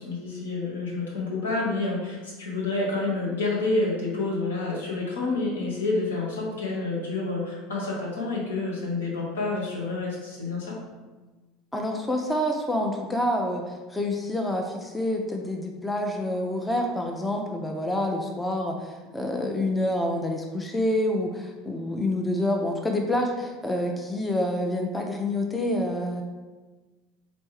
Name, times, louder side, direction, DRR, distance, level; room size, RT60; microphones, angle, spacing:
voice 1, 0.0-10.8, left 3 dB, 75° left, -4 dB, 1.1 m, -28 dB
voice 2, 11.7-26.2, left 1 dB, 10° left, 2 dB, 0.5 m, -27 dB
4.4 x 3.0 x 3.1 m, 1.2 s
figure-of-eight pair, 70°, 0 cm